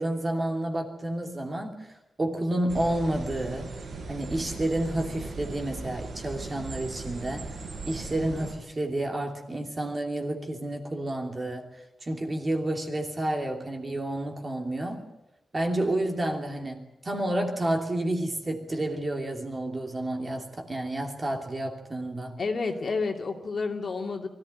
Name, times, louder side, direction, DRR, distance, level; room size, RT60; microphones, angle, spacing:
voice 1, 0.0-1.9 2.2-3.7 4.1-7.5 7.9-11.7 12.0-15.0 15.5-22.4, right 1 dB, 25° right, 2 dB, 2.8 m, -30 dB
sound 1, 2.7-8.6, right 3 dB, 65° right, 4.3 m, -38 dB
voice 2, 22.4-24.3, left 4 dB, 45° left, 3 dB, 2.5 m, -30 dB
24.0 x 14.5 x 9.4 m, 0.96 s
wide cardioid pair, 165°, 0 cm